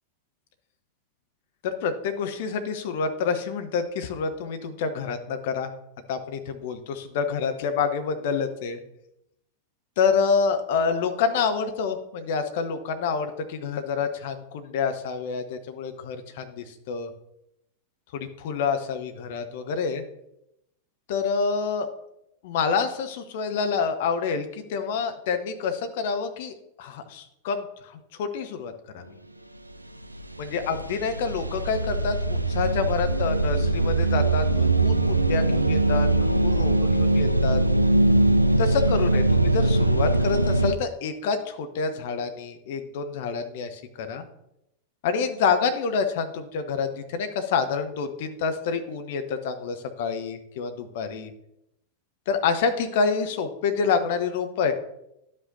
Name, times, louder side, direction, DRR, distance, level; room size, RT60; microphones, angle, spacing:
voice 1, 1.6-5.7 6.1-8.8 10.0-17.1 18.1-20.0 21.1-21.9 22.4-29.0 30.4-37.6 38.6-44.2 45.0-51.3 52.3-54.7, left 5 dB, 50° left, 7 dB, 0.8 m, -27 dB
sound 1, 29.7-29.8 30.0-40.7, right 2 dB, 85° right, 0.3 m, -22 dB
11.0 x 5.3 x 2.7 m, 0.82 s
figure-of-eight pair, 90°, 0 cm